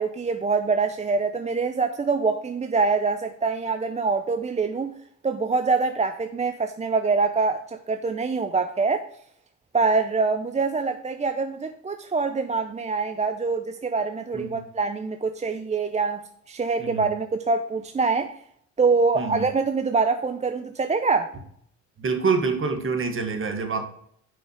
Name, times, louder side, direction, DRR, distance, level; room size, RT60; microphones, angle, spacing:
voice 1, 0.0-4.9 5.2-9.1 9.7-16.2 16.5-18.3 18.8-21.3, right 4 dB, 25° right, 0.5 m, -24 dB
voice 2, 16.8-17.1 19.2-19.5 22.0-23.8, right 4 dB, 45° right, 1.7 m, -26 dB
6.3 x 5.8 x 6.4 m
cardioid pair, 90°, 30 cm